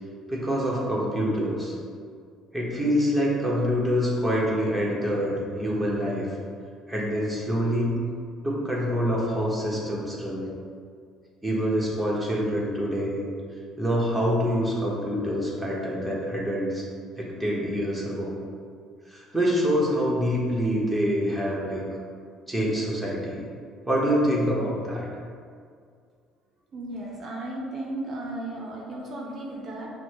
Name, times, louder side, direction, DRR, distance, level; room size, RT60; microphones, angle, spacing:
voice 1, 0.3-1.7 2.5-6.3 6.9-7.9 8.4-10.4 11.4-13.2 13.8-16.8 17.2-18.3 19.1-21.8 22.5-23.4 23.9-25.1, equal, 5° right, -5 dB, 1.2 m, -26 dB
voice 2, 26.7-29.9, right 1 dB, 50° right, -2 dB, 0.6 m, -35 dB
6.0 x 2.2 x 3.0 m, 2.2 s
supercardioid pair, 85°, 0 cm